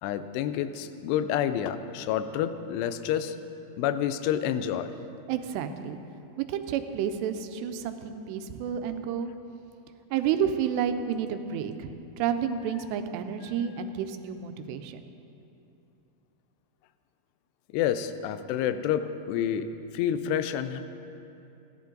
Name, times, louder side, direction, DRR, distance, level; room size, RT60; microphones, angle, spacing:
voice 1, 0.0-3.4 3.8-4.9 17.7-19.7 19.9-20.8, left 10 dB, 90° left, 10 dB, 2.7 m, -28 dB
voice 2, 5.3-6.0 6.4-9.3 10.1-15.0, right 8 dB, 90° right, 8 dB, 2.8 m, -30 dB
15.5 x 11.0 x 3.8 m, 2.8 s
omnidirectional pair, 4.8 m